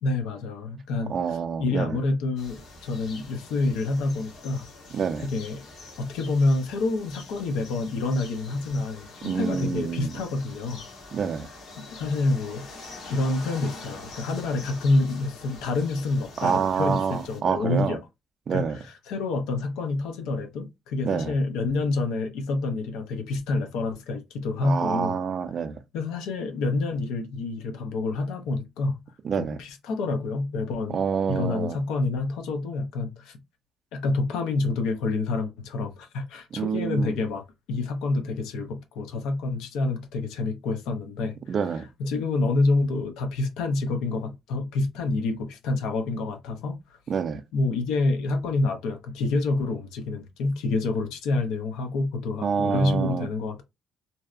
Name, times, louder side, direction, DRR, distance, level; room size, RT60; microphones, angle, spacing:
voice 1, 0.0-5.7 6.0-10.8 11.8-12.6 13.1-18.0 18.5-25.2 25.9-29.0 29.4-31.0 31.3-33.4 33.9-41.6 42.0-46.8 47.5-53.6, left 3 dB, 90° left, 0.5 m, -28 dB
voice 2, 1.1-2.0 4.9-5.3 9.2-10.1 11.1-11.5 16.4-18.0 18.5-18.8 21.0-21.3 24.6-25.8 29.2-29.6 30.9-31.8 36.6-37.1 41.5-41.9 47.1-47.4 52.4-53.3, right 6 dB, 40° right, 0.3 m, -27 dB
sound 1, 2.4-17.4, left 2 dB, 65° left, 0.9 m, -45 dB
2.6 x 2.1 x 2.4 m
cardioid pair, 135°, 0 cm